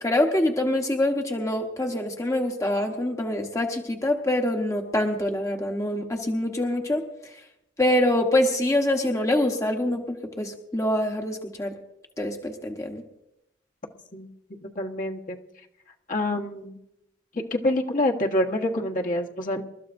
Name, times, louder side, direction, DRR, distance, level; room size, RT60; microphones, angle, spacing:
voice 1, 0.0-7.0 7.8-11.7 12.2-13.0, left 1 dB, 15° left, 2 dB, 1.1 m, -25 dB
voice 2, 14.6-15.4 16.1-16.8 17.3-19.6, left 1 dB, 45° left, 0 dB, 1.3 m, -26 dB
28.0 x 13.5 x 2.6 m, 0.86 s
head